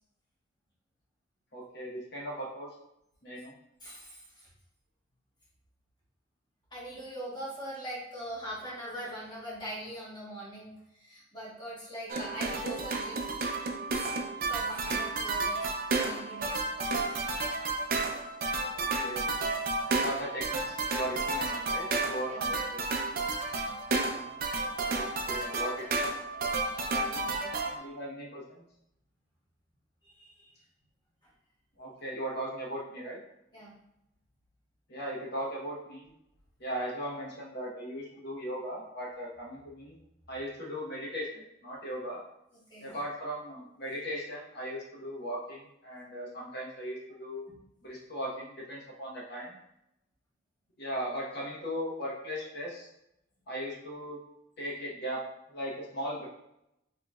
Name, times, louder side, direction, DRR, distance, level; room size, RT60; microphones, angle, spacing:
voice 1, 1.5-2.7 3.2-3.5 18.7-19.3 19.9-22.9 24.9-25.8 27.6-28.6 31.8-33.2 34.9-36.1 36.6-39.9 40.3-42.2 42.8-47.5 47.8-49.6 50.8-52.9 53.5-54.2 54.6-55.2 55.5-56.3, equal, 55° left, -3 dB, 1.1 m, -38 dB
voice 2, 3.8-4.5 6.7-13.3 14.5-16.6 22.2-22.5 23.6-24.2 26.5-27.5 30.0-30.5 31.2-31.3 33.5-33.7 42.5-43.0 47.5-47.6, equal, 20° left, -6 dB, 1.3 m, -42 dB
sound 1, 12.1-27.8, right 3 dB, 45° right, 0.5 m, -32 dB
4.8 x 3.0 x 2.4 m, 0.83 s
head